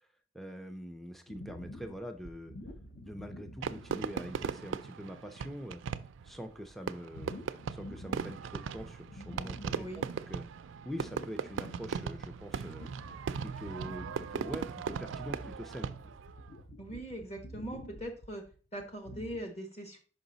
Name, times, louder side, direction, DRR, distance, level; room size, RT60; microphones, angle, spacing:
voice 1, 0.3-2.5 3.0-5.8 6.2-7.4 7.7-10.4 10.9-12.9 13.4-15.9, equal, ahead, 7 dB, 0.4 m, -44 dB
sound 1, 1.3-4.4 4.8-4.9 5.4-5.7 7.1-8.5 8.8-10.5 10.8-19.4, equal, 50° left, 0.8 m, -49 dB
Fireworks, 3.6-16.3, right 6 dB, 80° right, 0.4 m, -38 dB
voice 2, 16.8-18.4 18.7-20.0, right 1 dB, 35° left, 4 dB, 1.3 m, -41 dB
5.4 x 5.1 x 3.9 m, 0.37 s
head